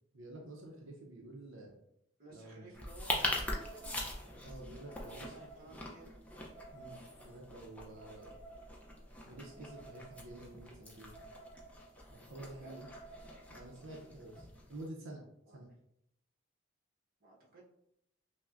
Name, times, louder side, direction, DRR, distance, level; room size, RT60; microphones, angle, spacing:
voice 1, 0.1-1.7 2.3-2.8 4.4-5.3 6.7-8.3 9.2-11.2 12.1-12.9 13.5-15.2 15.5-15.7, right 1 dB, 80° right, 0 dB, 0.6 m, -49 dB
voice 2, 2.2-4.1 5.0-6.2 12.2-12.8 15.5-15.6 17.2-17.6, right 2 dB, 45° right, -4 dB, 1.0 m, -56 dB
sound 1, 2.7-14.9, left 1 dB, 5° left, 0.4 m, -43 dB
sound 2, 3.4-14.4, right 3 dB, 20° right, 1.4 m, -56 dB
5.7 x 2.1 x 2.4 m, 0.77 s
head